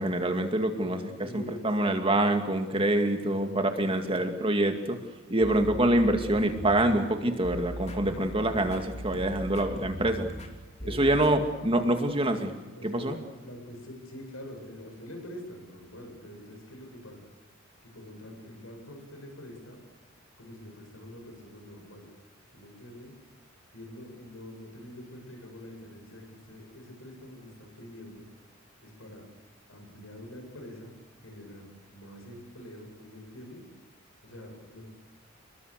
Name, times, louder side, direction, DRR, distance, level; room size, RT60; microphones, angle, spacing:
voice 1, 0.0-5.0 5.3-10.3 10.9-12.5 12.8-13.1, right 1 dB, 30° right, 5 dB, 2.3 m, -26 dB
voice 2, 0.7-1.7 3.0-4.2 5.3-5.5 7.8-8.3 10.8-11.3 12.8-17.2 17.8-19.8 20.4-22.1 22.5-23.1 23.7-28.2 28.8-29.2 29.7-31.0 31.2-33.6 34.2-34.8, left 1 dB, 85° left, 3 dB, 7.8 m, -45 dB
sound 1, 5.4-11.3, equal, 35° left, 3.2 m, -40 dB
28.0 x 22.0 x 6.7 m, 1.2 s
head